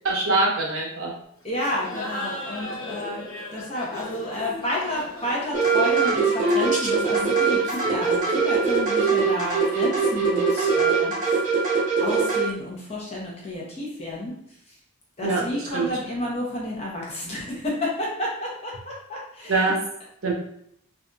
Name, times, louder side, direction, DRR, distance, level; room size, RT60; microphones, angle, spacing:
voice 1, 0.0-1.1 15.2-15.4 15.7-15.9 19.5-19.8 20.2-20.3, right 3 dB, 60° right, -2 dB, 0.8 m, -23 dB
voice 2, 1.4-11.2 11.6-14.3 15.2-19.7, left 1 dB, 30° left, -3 dB, 0.7 m, -31 dB
Laughter, 1.6-9.0, left 1 dB, 65° left, 0.8 m, -38 dB
sound 1, 5.5-12.4, right 5 dB, 35° right, 1.3 m, -22 dB
3.9 x 2.5 x 2.3 m, 0.70 s
head